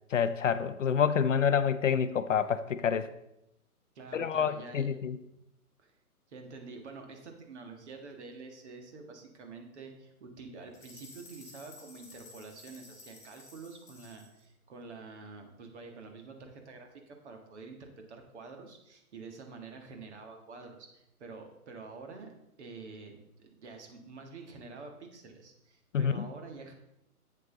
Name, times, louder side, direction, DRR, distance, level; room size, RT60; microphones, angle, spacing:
voice 1, 0.1-3.1 4.1-5.2 25.9-26.3, left 7 dB, 55° left, 11 dB, 0.6 m, -27 dB
voice 2, 4.0-4.9 5.8-5.9 6.3-26.7, right 4 dB, 50° right, 4 dB, 1.8 m, -48 dB
sound 1, 10.7-14.4, left 3 dB, 5° left, 2.1 m, -54 dB
8.2 x 7.4 x 3.9 m, 0.83 s
figure-of-eight pair, 135°, 45 cm